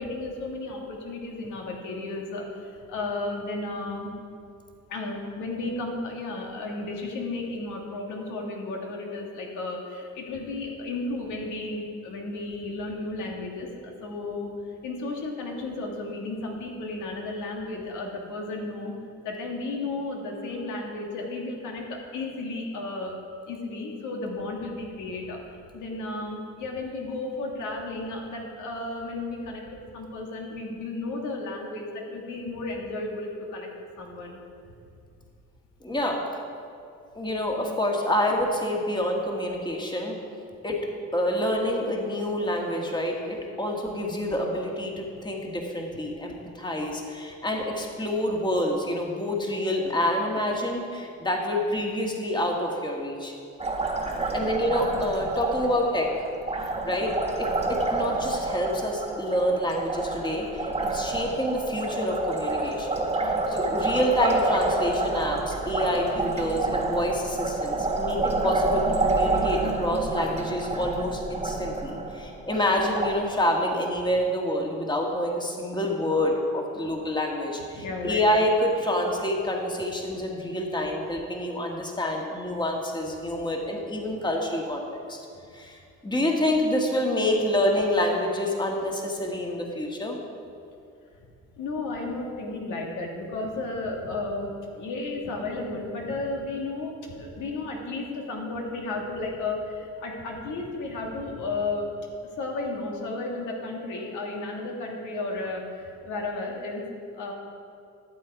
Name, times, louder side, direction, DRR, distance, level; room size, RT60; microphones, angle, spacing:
voice 1, 0.0-4.1 4.9-14.5 14.8-18.9 19.2-23.1 23.5-25.4 25.7-34.4 63.2-64.0 76.7-76.8 77.7-78.2 85.3-85.4 91.6-101.9 102.2-106.8 107.2-107.3, left 2 dB, 80° left, 0 dB, 1.8 m, -33 dB
voice 2, 35.8-36.4 37.1-40.2 40.6-40.9 41.1-53.3 54.3-56.1 56.8-57.1 57.4-85.2 85.5-90.2, left 1 dB, 15° left, 0 dB, 1.7 m, -27 dB
Liquid, 53.6-73.1, right 3 dB, 20° right, 1.6 m, -28 dB
13.0 x 7.5 x 4.7 m, 2.5 s
cardioid pair, 90°, 30 cm